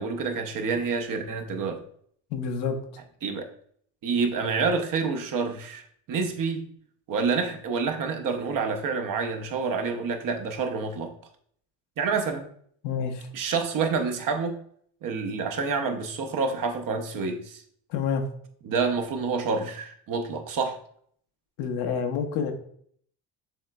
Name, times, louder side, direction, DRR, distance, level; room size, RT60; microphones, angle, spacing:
voice 1, 0.0-1.8 3.2-3.5 4.0-5.8 6.1-6.6 7.1-11.1 12.0-12.5 13.3-14.6 15.0-17.6 18.6-20.8, right 5 dB, 50° right, 6 dB, 0.8 m, -28 dB
voice 2, 2.3-2.8 12.8-13.3 17.9-18.2 21.6-22.5, left 6 dB, 80° left, 5 dB, 0.9 m, -28 dB
6.9 x 3.1 x 2.3 m, 0.62 s
supercardioid pair, 90°, 42 cm